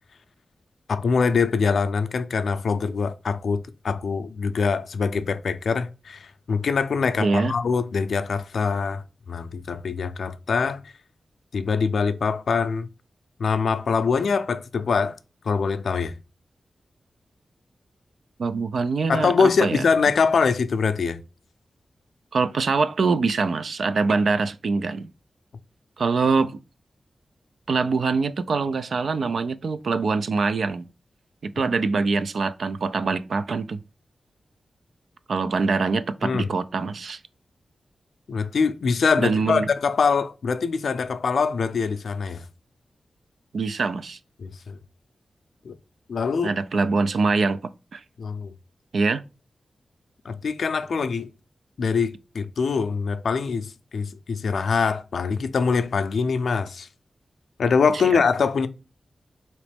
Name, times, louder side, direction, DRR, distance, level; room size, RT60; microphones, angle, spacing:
voice 1, 0.9-10.9 11.5-12.9 13.4-15.2 15.4-16.1 19.1-21.2 36.2-36.5 38.3-42.4 44.4-44.8 45.6-45.7 46.1-46.5 48.2-48.5 50.2-51.3 51.8-56.9 57.6-58.7, left 5 dB, 75° left, 0.4 m, -23 dB
voice 2, 7.2-7.5 18.4-19.8 22.3-25.1 26.0-26.5 27.7-30.8 31.4-33.8 35.3-37.2 39.2-39.7 43.5-44.2 46.4-48.0 48.9-49.2 58.0-58.2, right 4 dB, 65° right, 0.3 m, -24 dB
4.0 x 3.0 x 3.4 m
wide cardioid pair, 160°, 0 cm